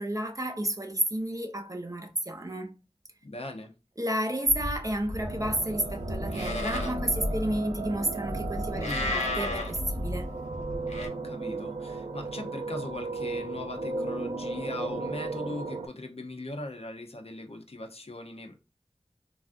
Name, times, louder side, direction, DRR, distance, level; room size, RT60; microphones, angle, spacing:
voice 1, 0.0-2.7 4.0-10.3, right 1 dB, 30° right, 0.6 m, -31 dB
voice 2, 3.2-3.7 8.7-9.1 11.0-18.5, left 2 dB, 60° left, 0.6 m, -39 dB
Livestock farm animals working animals, 4.5-11.1, left 1 dB, 80° left, 0.9 m, -34 dB
sound 1, 5.2-15.9, right 3 dB, 85° right, 0.4 m, -36 dB
3.3 x 2.4 x 2.5 m
wide cardioid pair, 40°, 11 cm